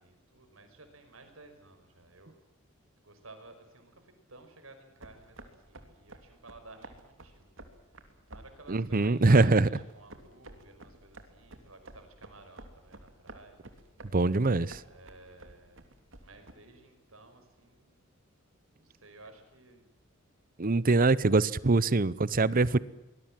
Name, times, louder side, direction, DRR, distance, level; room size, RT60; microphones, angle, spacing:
voice 1, 0.0-2.4 3.0-7.5 8.3-13.6 14.9-15.8 16.2-18.0 18.8-19.9, right 3 dB, 90° right, 5.6 m, -53 dB
sound 1, 5.0-16.6, right 2 dB, 65° right, 3.1 m, -52 dB
voice 2, 8.7-9.7 14.1-14.8 20.6-22.8, right 3 dB, 45° right, 0.8 m, -23 dB
24.5 x 20.5 x 7.7 m
head